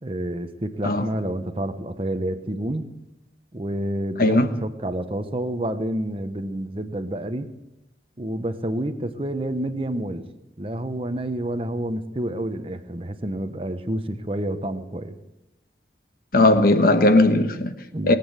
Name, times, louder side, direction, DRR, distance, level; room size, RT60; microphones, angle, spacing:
voice 1, 0.0-2.9 3.5-7.5 8.2-10.3 10.6-15.1 17.9-18.2, right 1 dB, 30° right, 1.0 m, -29 dB
voice 2, 16.3-17.7 18.0-18.2, left 2 dB, 55° left, 1.3 m, -17 dB
21.0 x 8.7 x 8.0 m
head